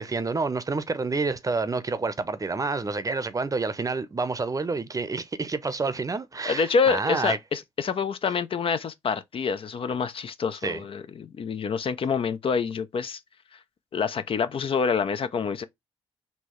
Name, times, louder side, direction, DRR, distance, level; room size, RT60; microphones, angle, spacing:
voice 1, 0.0-7.4 10.6-10.8, right 3 dB, 30° right, 0.6 m, -28 dB
voice 2, 6.5-13.2 13.9-15.6, left 5 dB, 50° left, 0.5 m, -27 dB
4.4 x 2.7 x 3.0 m
hypercardioid pair, 50°, 12 cm